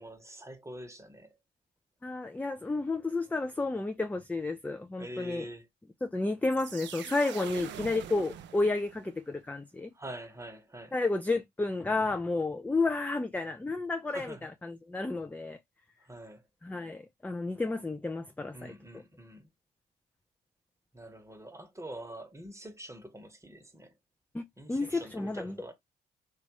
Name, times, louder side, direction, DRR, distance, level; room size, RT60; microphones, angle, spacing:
voice 1, 0.0-1.4 5.0-5.7 9.9-10.9 14.1-14.5 16.0-16.4 18.5-19.5 20.9-23.9 24.6-25.7, right 1 dB, 15° right, 1.0 m, -45 dB
voice 2, 2.0-5.5 6.0-9.9 10.9-15.6 16.6-18.7 24.3-25.6, left 3 dB, 5° left, 0.4 m, -31 dB
sound 1, 6.4-9.2, right 10 dB, 60° right, 0.5 m, -44 dB
2.9 x 2.3 x 2.9 m
hypercardioid pair, 45°, 21 cm